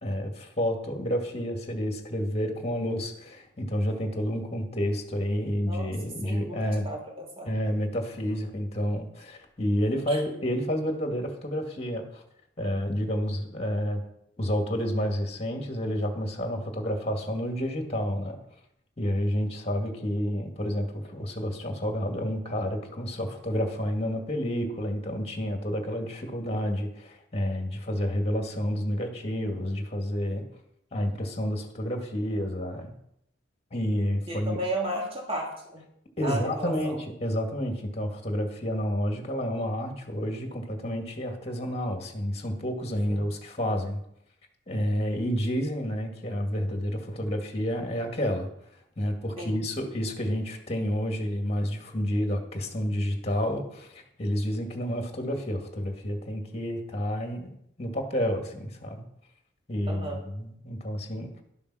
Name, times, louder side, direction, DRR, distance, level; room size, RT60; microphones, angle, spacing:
voice 1, 0.0-6.9 7.5-12.2 12.6-14.0 14.4-18.4 19.0-30.4 30.9-32.9 33.7-34.6 36.2-44.0 44.7-48.5 49.0-59.0 59.7-61.3, equal, 35° left, 3 dB, 2.1 m, -30 dB
voice 2, 6.2-7.5 10.1-10.2 34.3-35.8 36.2-37.0 43.1-43.3 49.4-49.6 59.9-60.2, right 1 dB, 30° right, -2 dB, 2.7 m, -34 dB
12.0 x 7.1 x 6.2 m, 0.76 s
head